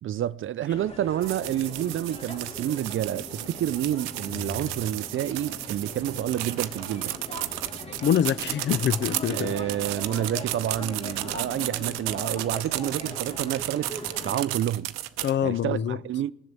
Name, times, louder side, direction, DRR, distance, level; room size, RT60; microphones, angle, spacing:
voice 1, 0.0-7.1 9.3-14.9 15.4-16.3, right 11 dB, 45° right, 0.5 m, -29 dB
sound 1, 0.7-14.4, left 2 dB, 20° left, 2.0 m, -40 dB
sound 2, 1.2-15.3, right 17 dB, 90° right, 0.7 m, -33 dB
sound 3, 4.3-6.2, left 4 dB, 60° left, 2.7 m, -44 dB
voice 2, 8.0-9.5 15.2-16.0, left 9 dB, 40° left, 0.5 m, -25 dB
19.0 x 7.7 x 6.9 m
supercardioid pair, 65°, 29 cm